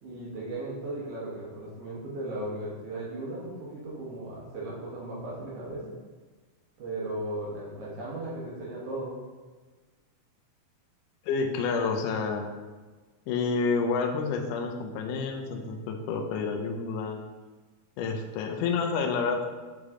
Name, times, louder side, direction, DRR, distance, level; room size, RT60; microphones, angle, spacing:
voice 1, 0.0-6.0 6.8-9.2, right 1 dB, 70° right, -6 dB, 1.4 m, -36 dB
voice 2, 11.3-12.5 13.3-17.2 18.0-19.5, left 5 dB, 85° left, 2 dB, 1.8 m, -29 dB
7.7 x 3.4 x 3.6 m, 1.3 s
omnidirectional pair, 4.4 m